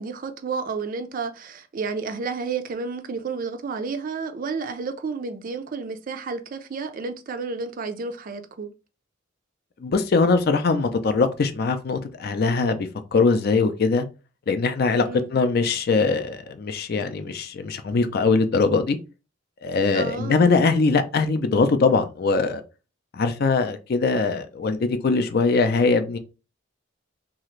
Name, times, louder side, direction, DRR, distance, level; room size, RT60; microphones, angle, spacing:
voice 1, 0.0-8.7 15.0-15.3 19.9-20.5, right 4 dB, 45° right, 0.4 m, -31 dB
voice 2, 9.8-14.1 14.5-15.0 15.3-19.0 19.6-22.6 23.1-26.2, left 4 dB, 50° left, 0.4 m, -21 dB
2.8 x 2.4 x 3.1 m
head